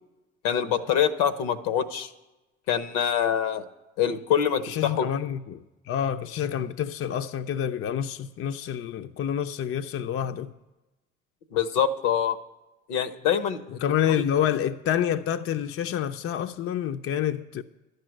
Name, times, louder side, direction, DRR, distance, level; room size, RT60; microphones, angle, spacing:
voice 1, 0.4-2.1 2.7-3.6 4.0-5.1 11.5-12.4 12.9-13.6 14.1-14.2, left 8 dB, 70° left, 0.9 m, -25 dB
voice 2, 4.6-10.5 13.8-17.6, left 9 dB, 40° left, 0.6 m, -28 dB
12.0 x 6.6 x 9.0 m
figure-of-eight pair, 45°, 34 cm